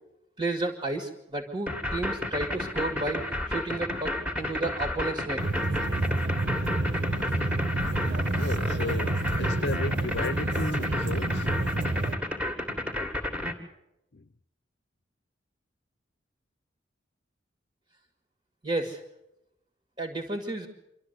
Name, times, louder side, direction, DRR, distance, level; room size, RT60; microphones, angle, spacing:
voice 1, 0.4-3.2 3.5-5.5 18.6-19.0 20.0-20.7, right 2 dB, 30° right, 3 dB, 1.9 m, -32 dB
sound 1, 1.7-13.5, left 1 dB, 5° right, 1.7 m, -31 dB
sound 2, 5.4-12.2, right 2 dB, 80° right, 1.3 m, -29 dB
voice 2, 8.3-11.5 14.1-14.3, left 3 dB, 65° left, 14 dB, 0.7 m, -35 dB
26.5 x 12.5 x 8.1 m, 0.87 s
head